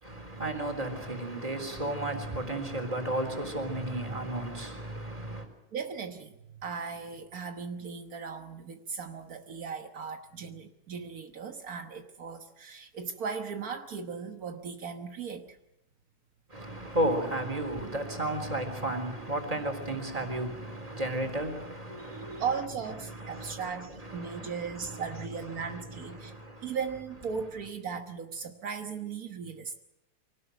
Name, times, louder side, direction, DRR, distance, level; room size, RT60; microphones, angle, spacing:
voice 1, 0.0-5.5 16.5-22.5 23.0-26.8, right 1 dB, 10° right, 3.5 m, -34 dB
voice 2, 5.7-15.6 21.9-26.3 26.6-29.8, right 6 dB, 70° right, 0.8 m, -37 dB
24.5 x 18.5 x 8.0 m
omnidirectional pair, 3.4 m